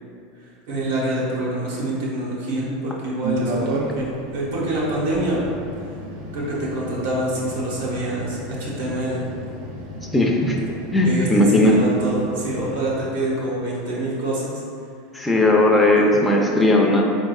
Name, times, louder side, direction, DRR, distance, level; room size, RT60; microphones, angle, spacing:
voice 1, 0.7-5.5 6.3-9.2 11.0-14.6 15.9-16.0, right 1 dB, 85° right, -5 dB, 1.1 m, -26 dB
sound 1, 3.2-13.0, right 1 dB, 55° right, 0.5 m, -33 dB
voice 2, 10.1-10.6 10.9-11.7 15.1-17.0, left 1 dB, 5° left, -2 dB, 0.4 m, -17 dB
3.9 x 3.6 x 2.3 m, 2.4 s
supercardioid pair, 150°, 0 cm